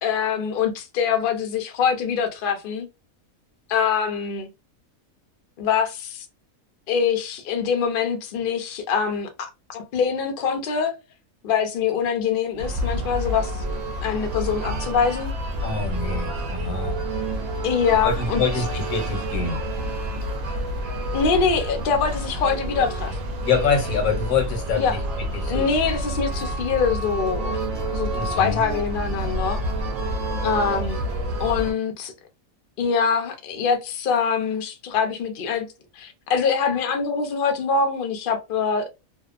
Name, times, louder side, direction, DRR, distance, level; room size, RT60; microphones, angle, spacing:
voice 1, 0.0-2.9 3.7-4.5 5.6-6.3 6.9-10.9 11.4-13.5 14.0-15.3 17.6-18.4 21.1-23.2 24.8-24.9 25.5-27.6 27.9-29.6 30.4-31.0 31.4-32.1 32.8-35.7 36.0-38.9, left 6 dB, 60° left, 0.6 m, -24 dB
sound 1, 12.6-31.7, right 1 dB, 70° right, 1.0 m, -28 dB
voice 2, 15.6-17.0 18.0-19.6 23.4-25.9 28.1-28.6, left 5 dB, 80° left, 1.2 m, -26 dB
2.7 x 2.1 x 2.4 m
omnidirectional pair, 1.5 m